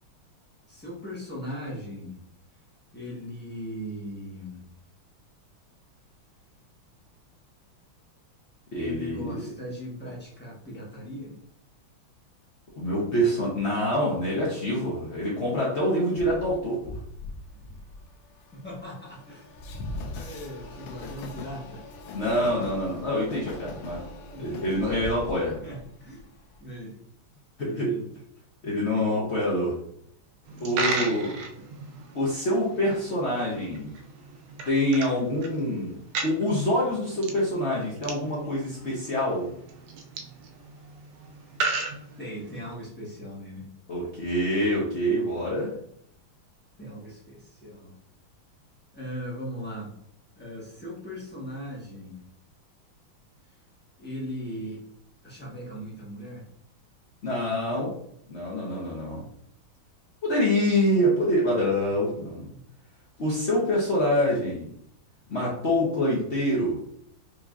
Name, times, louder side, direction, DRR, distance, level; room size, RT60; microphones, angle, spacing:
voice 1, 0.7-2.2 2.9-4.6 8.8-11.4 18.5-19.5 20.1-21.8 24.3-25.2 25.6-26.3 26.6-27.0 27.6-28.1 30.5-31.3 42.2-43.7 46.8-47.9 48.9-49.9 50.3-52.2 54.0-54.8 55.2-56.5 59.1-59.2 61.9-62.1 62.5-62.6, equal, 10° left, -7 dB, 0.5 m, -39 dB
voice 2, 8.7-9.4 12.8-17.0 22.1-24.0 24.4-25.6 27.6-27.9 28.6-29.8 30.6-31.4 32.1-33.9 34.7-35.9 36.2-39.5 43.9-45.7 57.2-57.9 58.3-59.2 60.2-62.5 63.2-64.7 65.3-66.8, equal, 55° left, -5 dB, 0.7 m, -26 dB
Train, 16.2-26.6, left 2 dB, 75° left, 1.3 m, -40 dB
Coin (dropping), 30.5-42.7, right 3 dB, 80° right, 1.4 m, -36 dB
4.7 x 2.8 x 2.4 m, 0.68 s
omnidirectional pair, 2.3 m